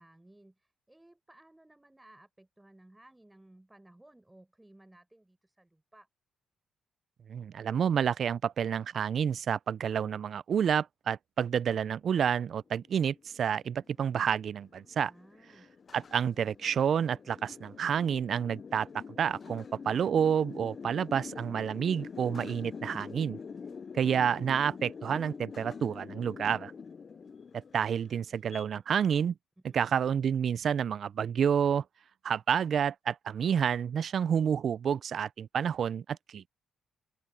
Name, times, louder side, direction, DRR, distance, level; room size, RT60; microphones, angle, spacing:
voice 1, 0.0-6.1 15.1-15.7 23.4-24.1 29.7-29.9, right 1 dB, 10° right, 7.2 m, -59 dB
voice 2, 7.3-15.1 15.9-18.9 19.2-23.4 24.0-26.7 27.5-29.3 29.7-31.8 32.2-36.5, right 8 dB, 55° right, 0.3 m, -29 dB
sound 1, 12.7-28.6, left 5 dB, 40° left, 0.4 m, -46 dB
open air
cardioid pair, 90°, 0 cm